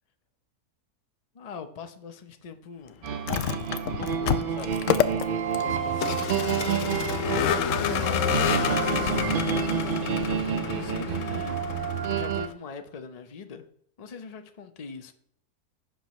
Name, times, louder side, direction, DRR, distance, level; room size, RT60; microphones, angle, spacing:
voice 1, 1.3-3.1 3.9-4.8 5.6-7.0 7.6-9.3 10.5-11.7 12.1-13.7 14.0-15.1, left 5 dB, 40° left, 7 dB, 0.6 m, -42 dB
sound 1, 3.0-12.5, right 7 dB, 65° right, 0.5 m, -29 dB
Vehicle, 3.1-12.5, left 10 dB, 65° left, 0.8 m, -29 dB
15.5 x 5.9 x 3.1 m, 0.67 s
omnidirectional pair, 1.6 m